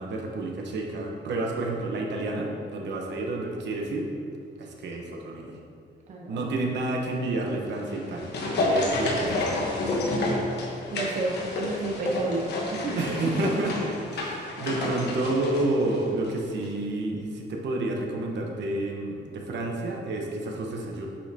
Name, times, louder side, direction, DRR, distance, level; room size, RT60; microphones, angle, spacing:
voice 1, 0.0-4.1 4.6-5.6 6.3-9.7 12.9-13.8 14.1-21.1, right 2 dB, 65° right, 0 dB, 1.0 m, -30 dB
voice 2, 6.1-6.5 10.9-12.4 12.7-12.9, right 2 dB, 40° right, -1 dB, 0.7 m, -30 dB
sound 1, 7.8-16.4 16.6-16.7, left 2 dB, 60° left, 1.2 m, -29 dB
8.5 x 5.6 x 2.8 m, 2.3 s
cardioid pair, 150°, 19 cm